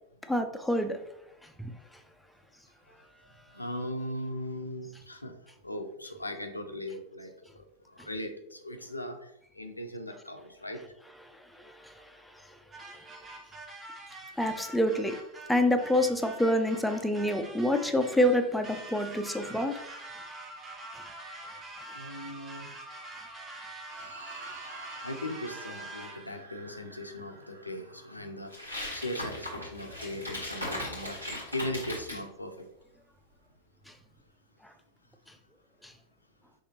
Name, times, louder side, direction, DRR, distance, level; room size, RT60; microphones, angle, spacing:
voice 1, 0.3-1.0 1.6-1.7 11.5-12.1 12.5-12.6 14.4-15.2 15.5-19.8 35.8-35.9, left 1 dB, ahead, 0.4 m, -27 dB
voice 2, 3.5-5.3 5.6-10.8 21.9-22.7 24.5-32.7, left 1 dB, 85° left, 0.5 m, -39 dB
sound 1, 12.7-26.4, right 2 dB, 20° right, 0.9 m, -45 dB
sound 2, 23.9-30.4, right 3 dB, 70° right, 0.6 m, -50 dB
sound 3, 28.5-32.2, left 1 dB, 85° right, 1.6 m, -38 dB
5.7 x 3.1 x 2.8 m
figure-of-eight pair, 90°, 0 cm